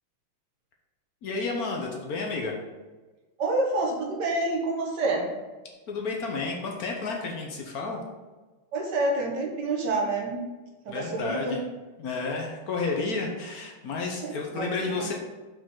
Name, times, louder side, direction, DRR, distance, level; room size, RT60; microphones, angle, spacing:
voice 1, 1.2-2.6 5.9-8.0 10.9-11.6 12.0-15.1, left 4 dB, 60° left, 1 dB, 1.1 m, -31 dB
voice 2, 3.4-5.3 8.7-10.4 10.8-11.6 14.2-15.1, right 2 dB, 60° right, 0 dB, 1.5 m, -28 dB
5.7 x 5.1 x 3.7 m, 1.2 s
omnidirectional pair, 2.2 m